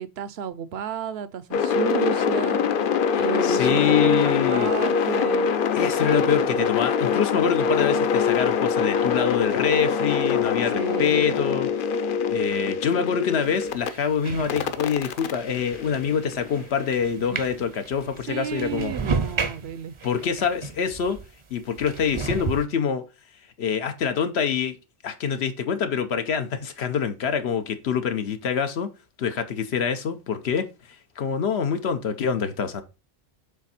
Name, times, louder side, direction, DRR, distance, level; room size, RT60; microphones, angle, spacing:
voice 1, 0.0-2.6 3.2-5.5 10.7-11.4 17.2-17.4 18.3-19.9, right 9 dB, 75° right, 0.8 m, -32 dB
sound 1, 1.5-13.9 14.5-16.6, left 6 dB, 60° left, 0.7 m, -24 dB
voice 2, 3.4-4.7 5.0-5.1 5.7-11.7 12.3-18.9 20.0-21.2 21.5-23.0 23.6-24.8 25.0-28.9 29.2-30.7 31.2-32.8, left 7 dB, 80° left, 1.1 m, -25 dB
sound 2, 13.4-21.3 21.8-22.7, right 5 dB, 40° right, 0.5 m, -33 dB
7.3 x 3.5 x 4.1 m
omnidirectional pair, 1.1 m